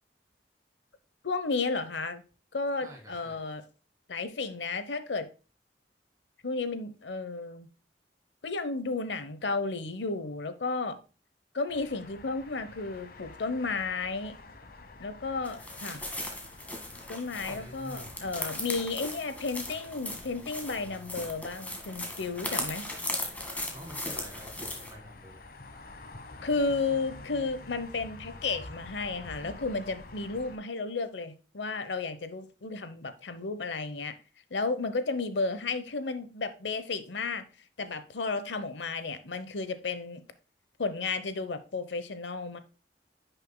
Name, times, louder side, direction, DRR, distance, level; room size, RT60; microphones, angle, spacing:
voice 1, 1.2-2.2 2.5-3.6 4.1-5.3 6.4-7.7 8.4-11.0 11.5-14.3 15.0-16.1 17.1-22.9 26.4-34.1 34.5-37.4 37.8-40.2 40.8-42.6, left 3 dB, 85° left, 0.9 m, -33 dB
voice 2, 2.8-3.4 17.5-18.2 23.7-25.5, equal, 20° right, 3.0 m, -48 dB
sound 1, 11.7-30.6, left 2 dB, 55° left, 1.1 m, -49 dB
sound 2, 15.4-24.9, left 1 dB, 10° left, 1.8 m, -38 dB
10.5 x 6.6 x 2.2 m
head